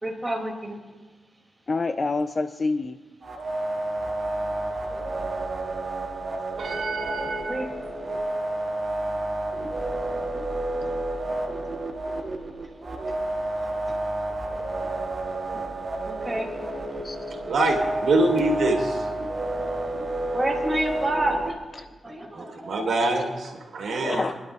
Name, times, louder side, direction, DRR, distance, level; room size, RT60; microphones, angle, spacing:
voice 1, 0.0-0.8 7.5-7.7 10.9-11.0 15.5-15.6 16.1-16.5 19.6-19.7 20.3-23.3, right 1 dB, 10° right, -2 dB, 2.5 m, -29 dB
voice 2, 1.7-3.0 17.0-17.2 21.8-21.9 23.9-24.3, left 3 dB, 35° left, 9 dB, 0.4 m, -27 dB
sound 1, 3.2-21.5, right 1 dB, 35° right, 1.3 m, -30 dB
voice 3, 6.6-7.6 17.5-19.1 22.3-24.3, right 2 dB, 75° right, 1 dB, 2.2 m, -25 dB
27.5 x 11.5 x 2.4 m, 1.3 s
wide cardioid pair, 145°, 0 cm